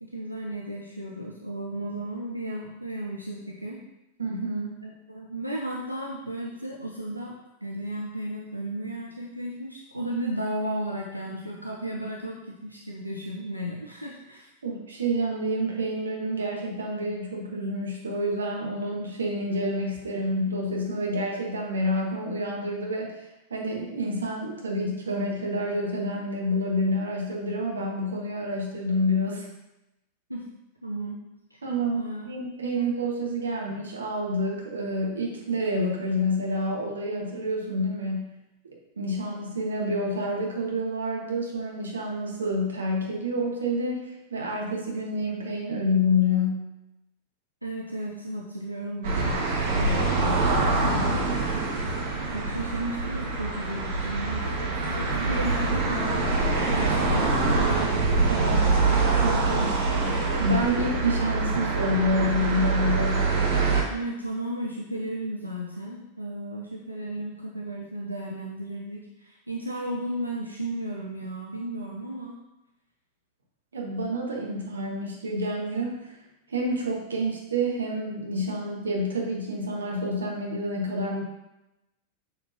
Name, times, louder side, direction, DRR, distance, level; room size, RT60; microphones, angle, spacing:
voice 1, 0.0-3.8 4.8-7.3 7.6-14.5 30.3-30.5 30.8-31.2 31.5-31.6 31.9-32.2 32.7-32.8 47.6-51.2 52.3-57.3 63.9-72.3, right 1 dB, 90° right, -2 dB, 0.7 m, -34 dB
voice 2, 4.2-4.8 14.6-29.5 31.6-38.3 39.0-46.7 58.3-58.8 59.1-63.2 73.7-76.2 76.5-81.2, equal, 70° right, -1 dB, 1.4 m, -28 dB
sound 1, 49.0-63.8, right 3 dB, 55° right, 1.6 m, -25 dB
6.5 x 6.3 x 2.8 m, 0.94 s
figure-of-eight pair, 90°, 0 cm